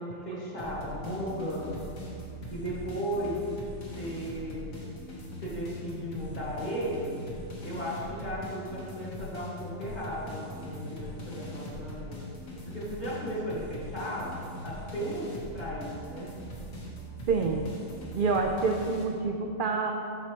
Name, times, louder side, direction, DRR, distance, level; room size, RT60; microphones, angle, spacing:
voice 1, 0.0-1.7 2.5-3.4 3.9-4.8 5.4-7.1 7.6-12.2 12.6-14.4 14.6-16.3, equal, 35° left, -8 dB, 2.0 m, -35 dB
sound 1, 0.6-19.0, equal, 90° left, 1.7 m, -41 dB
voice 2, 17.3-17.7 18.1-19.9, right 4 dB, 70° right, 2 dB, 0.5 m, -27 dB
13.0 x 4.4 x 2.9 m, 2.5 s
omnidirectional pair, 1.4 m